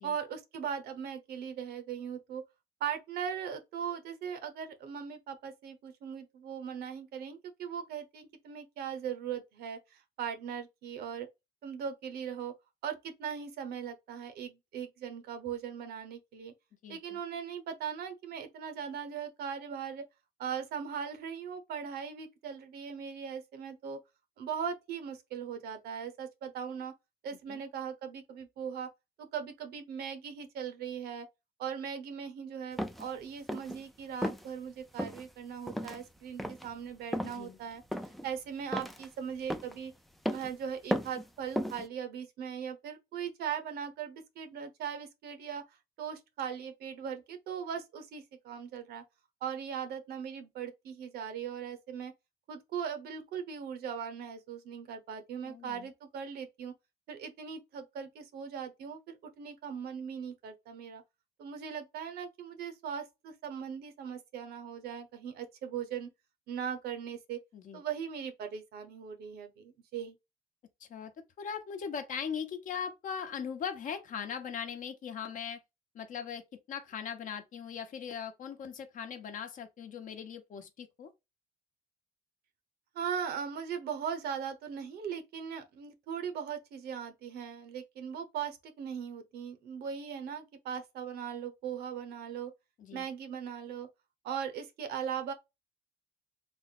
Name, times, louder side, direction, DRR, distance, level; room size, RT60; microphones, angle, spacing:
voice 1, 0.0-2.4 2.8-11.3 11.6-12.5 12.8-16.5 16.9-20.0 20.4-24.0 24.4-26.9 27.2-28.9 29.2-31.3 31.6-37.8 38.2-39.9 40.3-45.6 46.0-49.0 49.4-52.1 52.5-56.7 57.1-61.0 61.4-66.1 66.5-67.4 67.7-70.1 82.9-92.5 92.9-93.9 94.2-95.3, right 7 dB, 70° right, 0.9 m, -39 dB
voice 2, 16.8-17.2 27.5-27.6 37.2-37.6 55.4-55.9 67.5-67.8 70.8-71.1 71.4-75.6 75.9-81.1 92.8-93.0, left 7 dB, 50° left, 0.8 m, -40 dB
sound 1, 32.8-33.1 33.5-33.8 34.2-34.5 35.0-35.2 35.7-36.0 36.4-36.7 37.1-37.4 37.9-38.3 38.7-39.1 39.5-39.8 40.3-40.5 40.9-41.2 41.6-41.8, equal, ahead, 0.4 m, -34 dB
3.5 x 2.0 x 4.1 m
cardioid pair, 110°, 17 cm